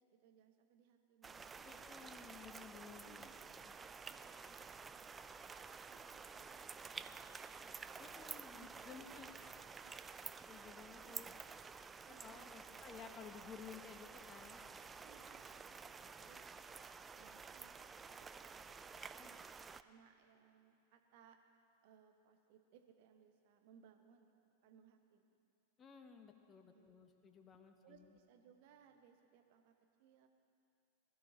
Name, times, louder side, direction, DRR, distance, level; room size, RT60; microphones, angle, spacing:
voice 1, 0.0-1.9 3.0-5.2 5.9-8.1 8.5-8.7 9.7-9.9 11.0-11.4 12.1-12.6 13.1-13.3 15.0-19.4 19.8-21.4 21.8-25.4 26.7-26.9 27.8-30.3, right 7 dB, 50° right, 5 dB, 1.2 m, -67 dB
sound 1, 1.2-19.8, right 5 dB, 15° right, 0.4 m, -52 dB
voice 2, 1.6-3.3 3.6-3.7 8.0-9.7 10.5-11.3 12.1-14.6 19.1-19.3 25.8-28.2, left 6 dB, 25° left, 5 dB, 1.2 m, -56 dB
21.0 x 12.5 x 4.0 m, 2.6 s
figure-of-eight pair, 90°, 0 cm